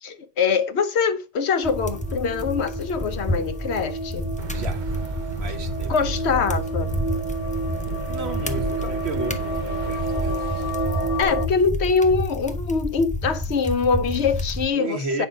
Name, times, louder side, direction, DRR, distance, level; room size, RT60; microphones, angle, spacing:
voice 1, 0.0-4.3 5.9-6.9 11.2-15.3, left 5 dB, 85° left, 1.2 m, -23 dB
sound 1, 1.5-11.5, right 1 dB, 60° left, 1.5 m, -31 dB
sound 2, 1.6-14.7, left 1 dB, 10° left, 0.8 m, -30 dB
sound 3, 4.4-11.2, right 7 dB, 55° right, 0.6 m, -33 dB
voice 2, 4.5-4.9 5.4-6.1 8.1-10.7 11.3-11.4 14.7-15.3, right 2 dB, 75° right, 1.5 m, -33 dB
9.0 x 5.6 x 4.9 m
omnidirectional pair, 1.1 m